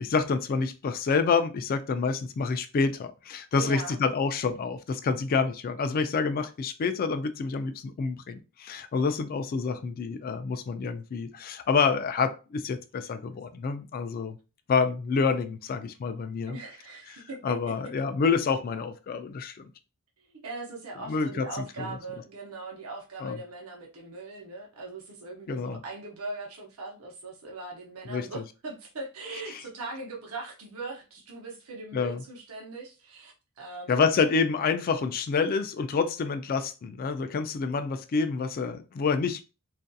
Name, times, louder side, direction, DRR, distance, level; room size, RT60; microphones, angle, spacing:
voice 1, 0.0-14.4 14.7-16.6 17.4-19.7 21.1-22.0 23.2-23.4 25.5-25.8 28.1-28.3 31.9-32.2 33.9-39.4, left 5 dB, 45° left, 0.3 m, -28 dB
voice 2, 3.5-4.0 16.5-17.5 20.2-34.1, right 2 dB, 85° right, 0.7 m, -40 dB
2.6 x 2.4 x 2.2 m
head